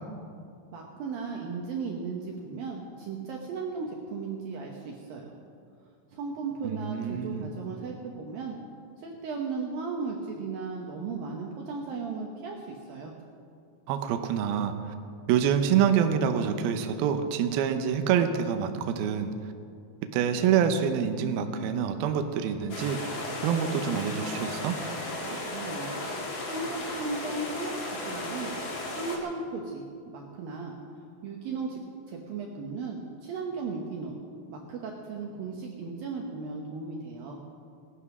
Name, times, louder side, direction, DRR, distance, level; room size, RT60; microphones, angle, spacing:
voice 1, 0.7-5.4 6.1-8.6 9.0-13.1 25.2-26.0 26.5-28.5 28.9-30.7 31.2-31.8 32.1-34.2 34.5-37.4, right 4 dB, 75° right, 0 dB, 2.2 m, -36 dB
voice 2, 6.6-7.5 13.9-14.9 15.3-19.3 20.1-24.7, right 8 dB, 90° right, 7 dB, 2.1 m, -26 dB
sound 1, 22.7-29.2, left 2 dB, 60° left, 1.2 m, -35 dB
18.5 x 11.5 x 6.1 m, 2.3 s
omnidirectional pair, 5.6 m